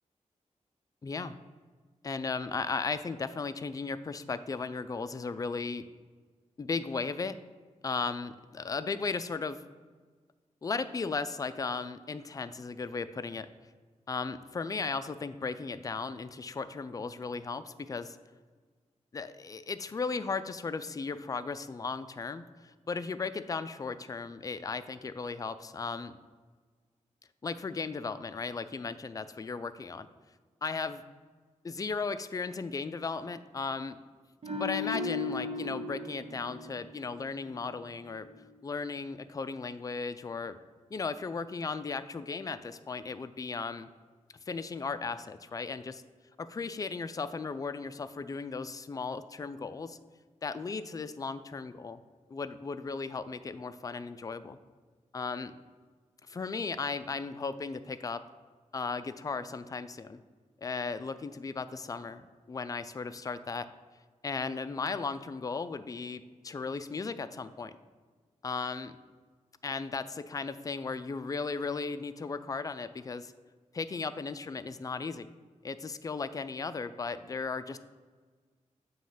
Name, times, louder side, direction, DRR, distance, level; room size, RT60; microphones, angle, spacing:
voice 1, 1.0-1.4 2.0-5.8 6.6-7.4 7.8-9.6 10.6-13.5 14.1-18.2 19.1-26.1 27.4-30.1 30.6-31.0 31.6-34.0 34.5-38.3 38.6-40.6 40.9-43.9 44.5-46.0 46.4-50.0 50.4-52.0 52.3-54.6 55.1-55.6 56.3-58.2 58.7-60.2 60.6-63.7 64.2-67.7 68.4-69.0 69.6-73.3 73.7-75.3 75.6-77.8, left 4 dB, 30° left, 12 dB, 0.3 m, -36 dB
sound 1, 34.4-37.7 38.0-38.2, left 3 dB, 50° right, 0.9 m, -37 dB
7.3 x 3.0 x 5.6 m, 1.5 s
cardioid pair, 75°, 13 cm